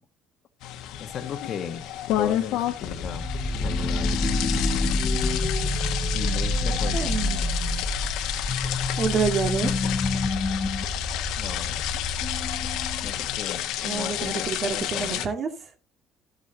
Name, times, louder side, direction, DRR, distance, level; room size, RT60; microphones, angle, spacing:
sound 1, 0.6-15.2, left 12 dB, 75° left, 1.3 m, -30 dB
voice 1, 1.0-1.8 2.2-3.3 3.6-4.2 6.1-7.1 11.3-11.9 13.0-15.3, left 7 dB, 45° left, 1.2 m, -36 dB
sound 2, 2.9-13.5, left 2 dB, 25° left, 0.9 m, -28 dB
voice 2, 6.9-7.5 9.0-9.7 13.8-15.5, right 6 dB, 40° right, 1.9 m, -27 dB
13.0 x 7.8 x 2.8 m
cardioid pair, 115°, 0 cm